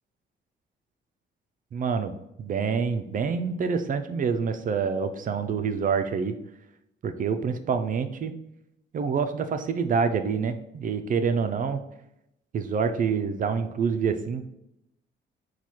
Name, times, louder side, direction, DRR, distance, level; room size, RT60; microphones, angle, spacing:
voice 1, 1.7-2.1 2.4-6.4 7.0-8.3 8.9-11.8 12.5-14.4, right 6 dB, 45° right, 8 dB, 0.4 m, -27 dB
4.5 x 2.3 x 4.2 m, 0.82 s
cardioid pair, 90°, 20 cm